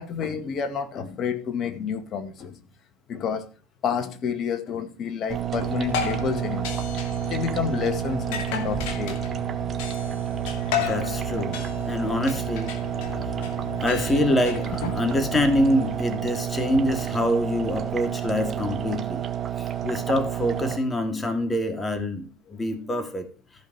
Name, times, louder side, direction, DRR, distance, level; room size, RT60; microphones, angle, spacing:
voice 1, 0.0-2.6 3.1-3.4 3.8-6.8 7.3-9.2 13.4-13.6, left 7 dB, 45° left, 2.1 m, -29 dB
sound 1, 5.3-20.8, right 10 dB, 35° right, 1.5 m, -30 dB
sound 2, 5.5-16.0, left 7 dB, 70° left, 2.4 m, -34 dB
voice 2, 10.8-19.3 19.6-23.3, left 1 dB, 20° left, 2.5 m, -26 dB
14.5 x 5.3 x 6.1 m
hypercardioid pair, 85°, 0 cm